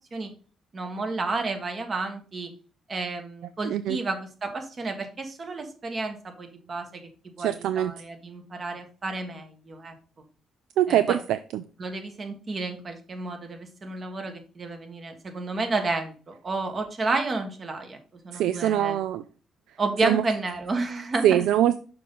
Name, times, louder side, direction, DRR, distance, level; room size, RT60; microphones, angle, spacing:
voice 1, 0.7-2.5 2.9-7.0 7.4-9.9 10.9-11.2 11.8-18.0 18.2-19.0 19.8-21.4, right 3 dB, 40° right, 1.5 m, -31 dB
voice 2, 3.6-4.0 7.4-7.9 10.8-11.6 18.3-19.2 20.0-20.2 21.2-21.8, right 11 dB, 85° right, 0.3 m, -23 dB
6.5 x 5.5 x 3.7 m
cardioid pair, 90°, 0 cm